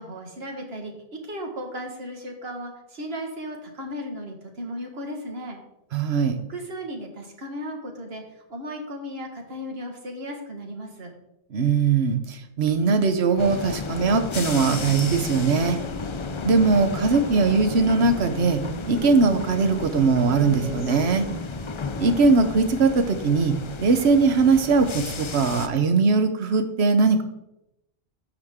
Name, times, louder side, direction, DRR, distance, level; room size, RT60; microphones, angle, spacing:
voice 1, 0.0-5.6 6.5-11.1, equal, 70° right, 2 dB, 1.8 m, -35 dB
voice 2, 5.9-6.4 11.5-15.8 16.4-21.3 22.0-27.2, right 4 dB, 90° right, 8 dB, 1.1 m, -20 dB
sound 1, 13.4-25.7, left 5 dB, 40° left, 0.4 m, -33 dB
sound 2, 14.4-22.2, right 3 dB, 45° right, 1.2 m, -38 dB
14.5 x 5.0 x 3.6 m, 0.86 s
omnidirectional pair, 1.1 m